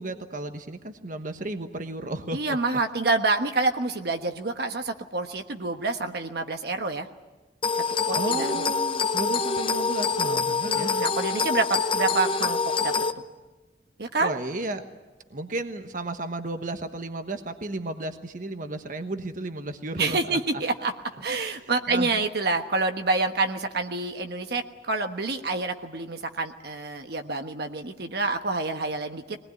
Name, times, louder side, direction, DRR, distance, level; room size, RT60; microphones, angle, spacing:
voice 1, 0.0-2.4 8.1-10.9 14.2-14.8 15.3-20.4 21.6-22.2, right 2 dB, 50° right, 7 dB, 1.2 m, -33 dB
voice 2, 2.3-7.1 8.1-8.7 10.6-13.3 14.0-14.3 20.0-20.9 21.2-29.4, right 3 dB, 65° right, 6 dB, 1.3 m, -27 dB
sound 1, 7.6-13.1, left 5 dB, 30° left, 0.9 m, -26 dB
22.5 x 19.0 x 9.5 m, 1.2 s
head